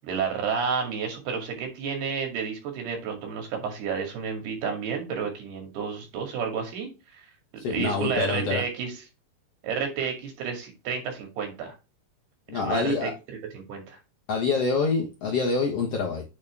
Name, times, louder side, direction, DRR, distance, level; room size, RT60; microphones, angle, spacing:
voice 1, 0.0-6.9 7.2-7.3 7.7-9.0 9.6-11.7 12.5-13.1 13.5-14.0, right 6 dB, 90° right, 4.2 m, -31 dB
voice 2, 7.6-8.6 12.5-13.1 14.3-16.2, left 4 dB, 55° left, 1.7 m, -26 dB
9.0 x 4.1 x 3.5 m
omnidirectional pair, 4.4 m